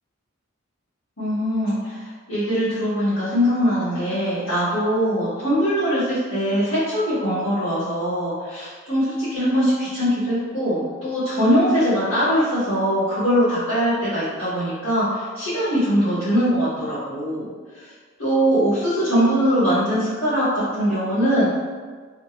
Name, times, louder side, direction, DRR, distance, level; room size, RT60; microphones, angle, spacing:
voice 1, 1.2-17.5 18.2-21.5, equal, 85° left, -16 dB, 1.5 m, -21 dB
3.3 x 2.3 x 2.9 m, 1.5 s
head